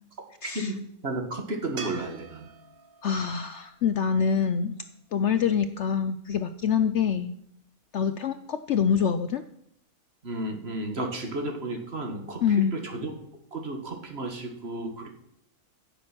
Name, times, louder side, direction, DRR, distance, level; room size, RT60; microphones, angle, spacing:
voice 1, 0.4-2.5 10.2-13.1 13.5-15.1, right 2 dB, 45° right, 3 dB, 1.9 m, -33 dB
sound 1, 1.8-5.0 8.3-8.4, right 5 dB, 70° right, 1.5 m, -44 dB
voice 2, 3.0-4.8 5.1-7.3 7.9-9.4 12.4-12.8, left 7 dB, 65° left, 10 dB, 0.8 m, -25 dB
16.0 x 7.1 x 6.1 m, 0.74 s
omnidirectional pair, 1.6 m